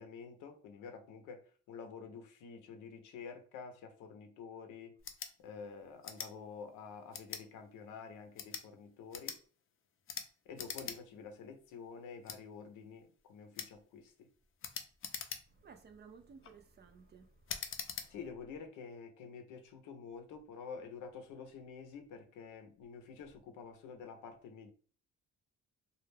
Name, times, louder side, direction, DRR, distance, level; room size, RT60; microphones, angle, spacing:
voice 1, 0.0-4.9 5.4-9.4 10.4-14.3 18.1-24.7, left 5 dB, 90° left, 0.6 m, -49 dB
sound 1, 5.0-5.3 6.0-6.3 7.1-7.4 8.2-8.7 9.1-9.4 10.1-10.3 10.6-11.0 11.3-11.4 12.2-12.4 13.5-13.7 14.6-15.7 16.2-16.5 17.5-18.1, left 7 dB, 45° left, 0.5 m, -43 dB
voice 2, 15.5-18.2, right 5 dB, 35° right, 0.5 m, -58 dB
2.3 x 2.1 x 3.2 m
cardioid pair, 90°, 30 cm